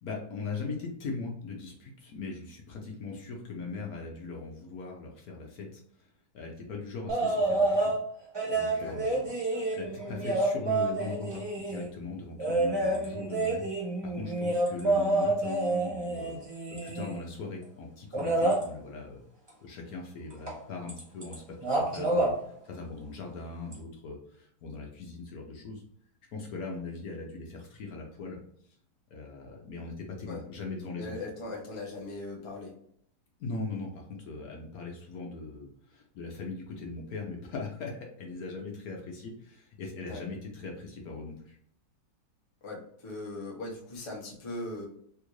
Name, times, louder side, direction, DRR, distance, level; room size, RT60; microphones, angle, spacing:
voice 1, 0.0-6.1 6.3-8.0 8.5-9.3 9.7-13.7 14.0-16.4 16.7-19.2 19.6-22.3 22.6-25.8 26.3-28.4 28.7-28.8 29.1-31.1 33.4-41.6, left 4 dB, 65° left, 0 dB, 1.0 m, -40 dB
sound 1, 7.1-8.0 8.3-11.9 12.4-17.3 18.1-18.6 20.5-20.6 20.9-21.3 21.6-22.3 23.7-23.8, right 2 dB, 35° right, 0.4 m, -28 dB
voice 2, 31.0-32.7 40.0-40.2 42.6-44.9, left 2 dB, 30° left, -2 dB, 0.5 m, -39 dB
3.5 x 2.4 x 3.0 m, 0.67 s
omnidirectional pair, 1.9 m